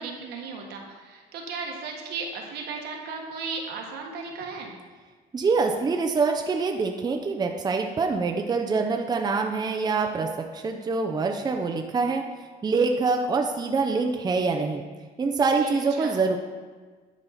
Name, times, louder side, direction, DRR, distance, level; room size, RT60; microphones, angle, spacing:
voice 1, 0.0-4.7 15.6-16.2, right 4 dB, 75° right, 1 dB, 1.5 m, -35 dB
voice 2, 5.3-12.2 12.6-14.8 15.2-16.4, right 4 dB, 25° right, 3 dB, 0.6 m, -25 dB
10.0 x 5.4 x 4.2 m, 1.4 s
cardioid pair, 110°, 17 cm